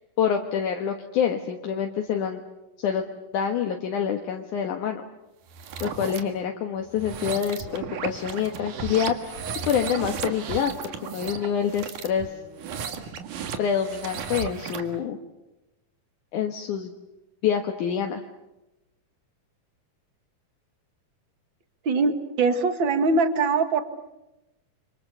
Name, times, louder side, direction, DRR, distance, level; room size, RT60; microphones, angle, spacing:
voice 1, 0.2-2.4 2.8-3.0 3.3-5.0 5.8-9.4 9.7-10.7 11.0-12.3 13.6-15.2 16.3-16.9 17.4-18.2, left 8 dB, 70° left, 3 dB, 2.8 m, -26 dB
sound 1, 5.5-6.2 6.9-15.0, right 6 dB, 70° right, 3.3 m, -35 dB
voice 2, 21.8-23.8, right 3 dB, 45° right, 9 dB, 2.1 m, -22 dB
29.5 x 25.5 x 6.9 m, 0.96 s
omnidirectional pair, 3.8 m